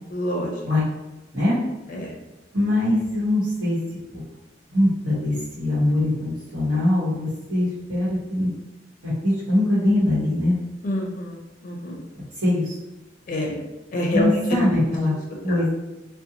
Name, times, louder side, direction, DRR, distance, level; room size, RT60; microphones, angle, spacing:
voice 1, 0.1-0.6 1.9-2.1 10.8-11.4 11.6-12.0 13.3-13.5 13.9-14.6, left 1 dB, 45° left, 0 dB, 0.5 m, -26 dB
voice 2, 2.5-3.8 4.1-4.2 4.7-8.5 9.0-10.6 12.1-12.8 14.1-15.1 15.4-15.7, left 1 dB, 85° right, -11 dB, 1.0 m, -22 dB
2.5 x 2.1 x 2.8 m, 1.0 s
head